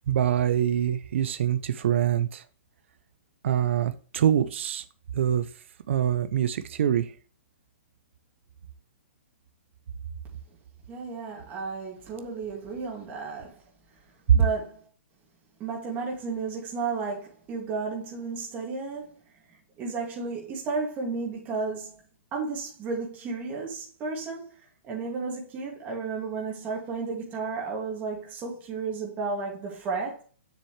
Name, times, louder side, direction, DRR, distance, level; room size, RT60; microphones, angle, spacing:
voice 1, 0.1-2.4 3.4-4.8 5.1-5.5 5.9-7.1 14.3-14.4, right 9 dB, 65° right, 0.7 m, -24 dB
voice 2, 10.9-13.6 14.3-14.8 15.6-19.1 19.8-22.0 22.3-30.2, right 4 dB, 25° right, 2.4 m, -33 dB
7.2 x 6.1 x 3.3 m
hypercardioid pair, 145°, 7 cm